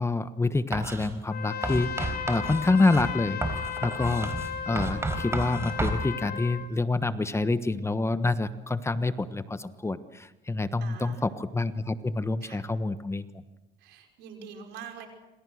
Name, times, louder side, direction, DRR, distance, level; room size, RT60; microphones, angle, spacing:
voice 1, 0.0-4.3 4.7-13.2, left 3 dB, 15° left, 12 dB, 1.2 m, -27 dB
Writing, 0.7-1.1 1.6-6.0, right 2 dB, 15° right, 4.3 m, -32 dB
Trumpet, 1.3-6.7, left 9 dB, 65° left, 2.5 m, -35 dB
voice 2, 10.8-11.2 12.4-12.7 13.8-15.1, right 7 dB, 85° right, 3 dB, 5.6 m, -44 dB
27.0 x 27.0 x 6.5 m, 1.0 s
cardioid pair, 110°, 17 cm